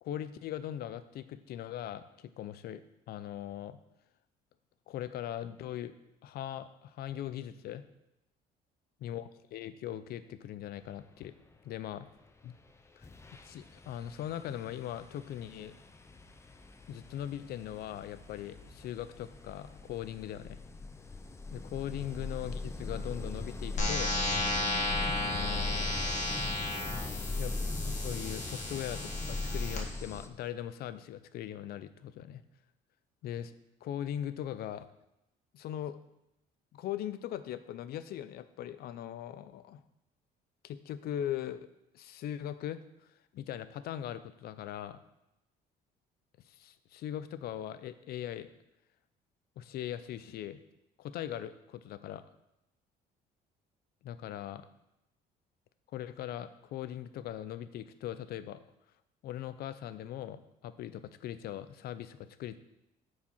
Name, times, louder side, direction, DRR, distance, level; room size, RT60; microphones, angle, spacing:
voice 1, 0.0-2.8 3.1-3.8 4.9-6.0 6.2-7.9 9.0-11.3 11.6-12.1 12.4-12.6 13.0-13.1 13.5-15.8 16.9-20.6 21.5-24.1 25.1-26.1 27.4-27.5 27.8-32.4 33.2-33.5 33.8-34.9 35.5-36.0 36.7-39.8 40.6-41.7 41.9-42.8 43.3-45.0 46.5-48.5 49.6-50.6 51.0-52.2 54.0-54.7 55.9-58.6 59.2-62.6, left 11 dB, 65° left, 13 dB, 0.5 m, -40 dB
sound 1, 12.5-12.7 13.0-30.3, left 2 dB, 15° left, 0.6 m, -40 dB
sound 2, 23.8-29.8, left 2 dB, 45° left, 1.8 m, -34 dB
9.4 x 4.8 x 4.4 m, 0.88 s
cardioid pair, 110°, 17 cm